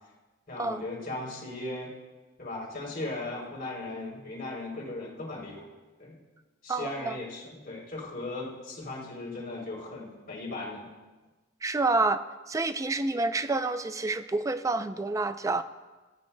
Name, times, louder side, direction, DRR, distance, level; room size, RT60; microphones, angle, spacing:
voice 1, 0.5-1.9 2.4-5.7 6.0-6.2 6.6-10.9, left 2 dB, 45° left, -3 dB, 3.3 m, -37 dB
voice 2, 6.7-7.2 11.6-15.6, right 3 dB, 15° right, 11 dB, 0.4 m, -28 dB
18.0 x 13.0 x 2.2 m, 1.2 s
head